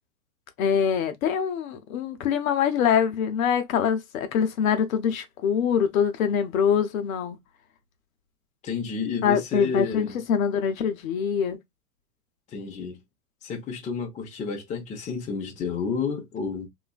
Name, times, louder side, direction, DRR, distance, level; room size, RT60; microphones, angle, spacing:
voice 1, 0.6-7.4 9.2-11.6, left 7 dB, 55° left, 0.8 m, -24 dB
voice 2, 8.6-10.1 12.5-13.0 13.4-16.7, left 5 dB, 15° left, 0.7 m, -30 dB
3.0 x 2.4 x 2.2 m
hypercardioid pair, 120°, 49 cm